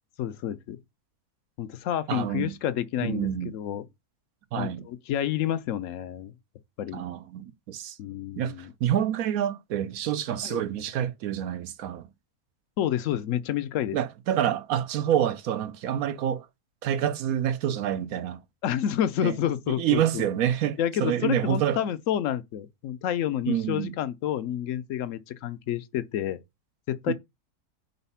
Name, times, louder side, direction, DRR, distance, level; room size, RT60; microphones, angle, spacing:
voice 1, 0.2-0.8 1.6-3.8 4.6-6.3 6.8-7.0 8.0-8.7 10.4-10.6 12.8-14.0 18.6-20.3 20.8-26.4 26.9-27.1, left 10 dB, 65° left, 0.9 m, -29 dB
voice 2, 2.1-2.5 3.0-3.5 4.5-4.8 6.9-8.0 8.4-12.1 13.9-16.5 16.8-18.4 19.2-19.4 19.7-21.8 23.5-23.9 27.1-27.2, right 10 dB, 75° right, 1.1 m, -27 dB
4.3 x 4.1 x 5.6 m
omnidirectional pair, 1.6 m